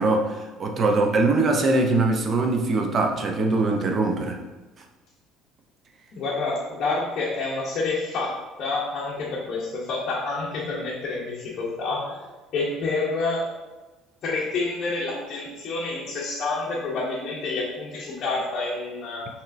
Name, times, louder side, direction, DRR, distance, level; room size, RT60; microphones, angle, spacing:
voice 1, 0.0-4.4, right 3 dB, 30° right, 3 dB, 0.5 m, -22 dB
voice 2, 6.1-13.5 14.2-19.3, left 3 dB, 40° left, -6 dB, 0.7 m, -28 dB
5.6 x 3.0 x 2.5 m, 1.2 s
cardioid pair, 175°, 0 cm